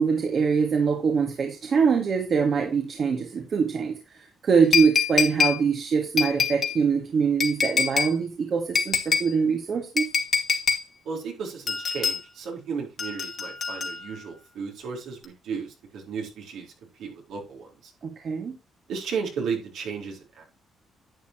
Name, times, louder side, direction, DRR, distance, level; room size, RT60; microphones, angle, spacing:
voice 1, 0.0-4.0 4.4-10.1 18.0-18.5, right 5 dB, 50° right, 2.1 m, -23 dB
sound 1, 4.7-5.6 6.2-6.8 7.4-8.1 8.7-9.3 10.0-10.8 11.7-12.2 13.0-14.2 15.2-15.3, left 6 dB, 50° left, 2.3 m, -25 dB
voice 2, 11.0-16.7 17.0-17.7 18.9-20.4, right 5 dB, 80° right, 4.4 m, -34 dB
11.0 x 8.5 x 3.1 m
cardioid pair, 90°, 0 cm